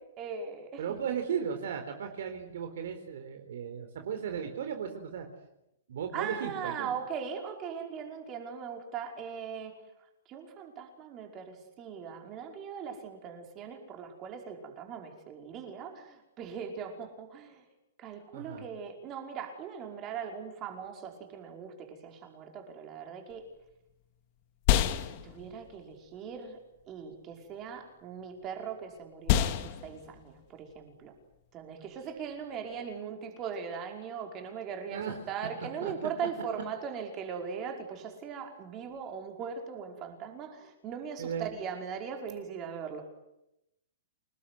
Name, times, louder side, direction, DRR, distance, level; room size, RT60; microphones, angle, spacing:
voice 1, 0.2-1.0 6.1-9.7 10.3-17.6 18.0-23.5 24.9-26.6 26.9-31.1 31.5-43.0, right 7 dB, 20° right, 3 dB, 5.2 m, -40 dB
voice 2, 0.8-5.3 5.9-6.9 18.3-18.7 34.9-35.2 35.8-35.9 41.2-41.5, right 7 dB, 60° right, 5 dB, 4.3 m, -36 dB
sound 1, 23.3-32.9, left 11 dB, 35° left, 2.2 m, -33 dB
29.0 x 19.5 x 9.6 m, 0.86 s
hypercardioid pair, 170°, 0 cm